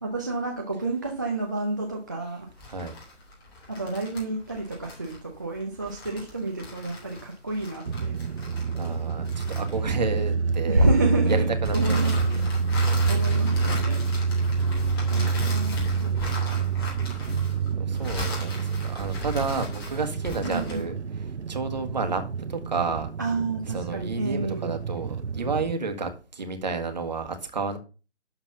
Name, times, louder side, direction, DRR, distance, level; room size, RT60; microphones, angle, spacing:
voice 1, 0.0-2.5 3.7-8.2 10.7-12.5 13.1-14.0 15.1-16.7 20.4-20.9 23.2-24.7, right 2 dB, 15° right, 0.7 m, -29 dB
sound 1, 2.5-10.3 11.6-20.9, left 2 dB, 20° left, 3.2 m, -38 dB
sound 2, 7.9-25.7, right 5 dB, 75° right, 0.6 m, -27 dB
voice 2, 8.7-10.9 11.3-12.1 12.9-13.2 15.2-15.3 17.1-17.4 17.8-21.0 21.5-23.1 23.7-27.8, right 4 dB, 40° right, 1.7 m, -31 dB
11.5 x 4.0 x 6.7 m
figure-of-eight pair, 150°, 35 cm